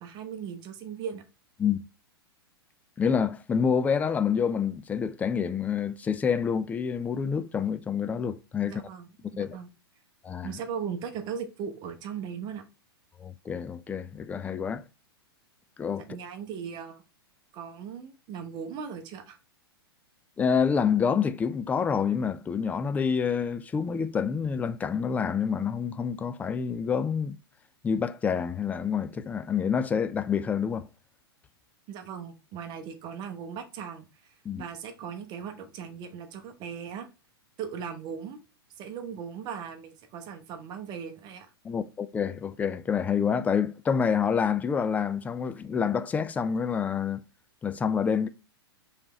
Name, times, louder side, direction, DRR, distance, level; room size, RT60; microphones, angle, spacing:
voice 1, 0.0-1.2 8.6-9.7 10.4-12.6 16.1-17.0 17.5-19.4 31.9-37.1 37.6-38.4 38.8-41.5, right 7 dB, 35° right, 0.9 m, -38 dB
voice 2, 3.0-8.8 9.2-9.6 10.2-10.5 13.2-14.8 15.8-16.0 20.4-27.4 27.8-30.9 34.5-34.6 41.6-47.2 47.6-48.3, left 6 dB, 10° left, 0.3 m, -27 dB
5.0 x 3.3 x 3.0 m
figure-of-eight pair, 105°, 13 cm